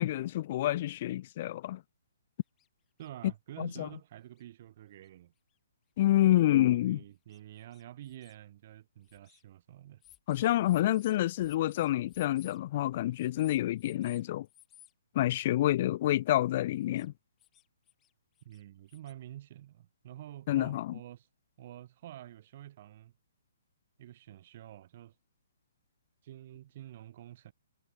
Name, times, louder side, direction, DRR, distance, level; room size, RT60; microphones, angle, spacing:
voice 1, 0.0-1.8 3.6-3.9 6.0-7.0 10.3-14.5 15.2-17.1 20.5-20.9, left 14 dB, 40° left, 0.4 m, -28 dB
sound 1, 2.6-2.7 3.0-3.1 3.9-4.0 4.4-4.5 5.0-5.1 6.0-6.1 6.5-6.6 7.3-8.4 9.0-9.4 10.0-12.6 13.1-14.2 14.5-14.9 16.8-17.1 17.4-18.1 18.4-19.1, left 13 dB, 20° left, 2.2 m, -58 dB
voice 2, 3.0-5.3 6.1-10.0 18.4-21.3 21.6-23.1 24.0-25.1 26.2-27.5, right 13 dB, 40° right, 2.2 m, -49 dB
figure-of-eight pair, 125°, 0 cm